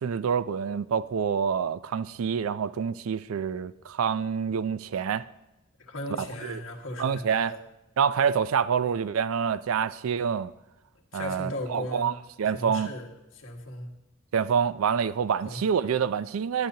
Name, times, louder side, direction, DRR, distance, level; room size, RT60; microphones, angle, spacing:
voice 1, 0.0-5.2 6.2-6.6 7.0-7.5 8.0-10.5 11.1-12.9 14.3-16.7, right 7 dB, 90° right, 0.4 m, -27 dB
voice 2, 5.9-7.6 11.1-12.1 12.5-13.1 13.3-13.9 15.4-15.6, left 1 dB, 70° left, 1.7 m, -36 dB
17.5 x 10.5 x 2.8 m
head